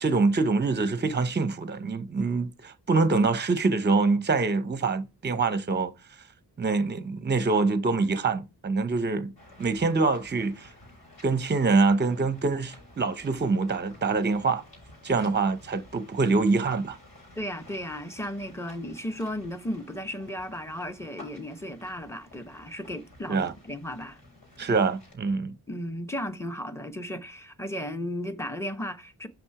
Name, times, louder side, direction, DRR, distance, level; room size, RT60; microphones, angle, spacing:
voice 1, 0.0-5.9 6.6-9.3 9.6-10.7 11.2-14.6 15.0-17.0 23.3-23.5 24.6-25.5, right 3 dB, 25° right, 0.7 m, -25 dB
sound 1, 9.4-25.2, left 1 dB, 65° left, 4.7 m, -53 dB
voice 2, 17.4-24.2 25.7-29.3, equal, 5° left, 0.9 m, -35 dB
6.0 x 5.2 x 4.7 m
wide cardioid pair, 85°, 40 cm